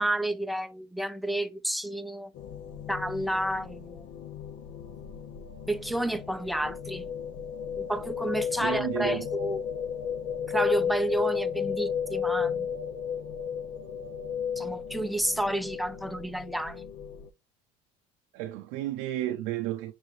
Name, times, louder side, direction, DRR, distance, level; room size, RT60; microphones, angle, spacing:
voice 1, 0.0-2.3 2.9-4.1 5.7-7.1 7.8-9.6 10.5-12.7 14.6-16.9, right 1 dB, ahead, 0.4 m, -30 dB
sound 1, 2.3-17.3, left 7 dB, 65° left, 0.7 m, -33 dB
voice 2, 8.6-9.3 18.3-20.0, right 14 dB, 80° right, 0.5 m, -32 dB
5.6 x 3.2 x 2.4 m
supercardioid pair, 90°, 20 cm